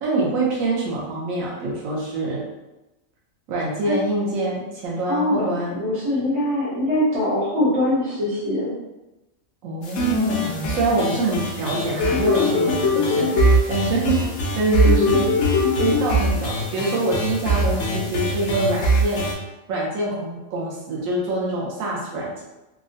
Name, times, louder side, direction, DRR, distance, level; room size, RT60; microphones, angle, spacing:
voice 1, 0.0-2.4 3.5-5.8 9.6-13.3 13.7-15.3 15.8-19.3 19.7-22.4, right 2 dB, 90° right, -4 dB, 1.1 m, -25 dB
voice 2, 5.1-8.8, left 1 dB, 65° right, -8 dB, 1.5 m, -23 dB
sound 1, 9.8-19.3, equal, 75° left, 1.0 m, -21 dB
3.5 x 2.0 x 2.5 m, 1.0 s
omnidirectional pair, 1.4 m